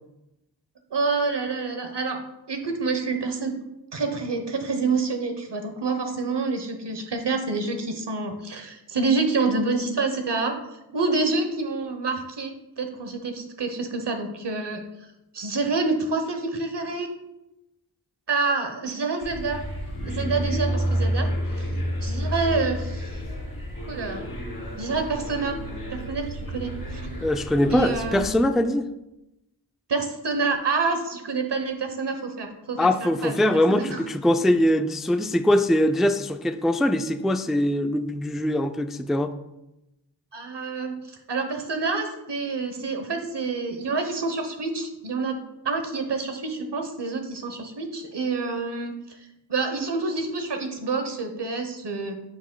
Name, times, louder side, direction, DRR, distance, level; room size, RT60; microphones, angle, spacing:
voice 1, 0.9-2.2 2.5-3.6 3.9-10.5 10.9-14.8 15.3-17.1 18.3-19.6 20.0-21.3 21.6-21.7 22.0-23.1 23.9-24.3 24.8-25.6 25.9-27.1 27.7-28.4 29.9-34.0 40.3-40.9 41.3-49.2 49.5-52.1, right 4 dB, 85° right, 5 dB, 1.0 m, -27 dB
sound 1, 19.2-28.3, equal, 65° left, 2.3 m, -30 dB
voice 2, 27.2-28.9 32.8-39.4, left 1 dB, ahead, 8 dB, 0.3 m, -22 dB
9.4 x 6.0 x 2.2 m, 0.92 s
wide cardioid pair, 40°, 40 cm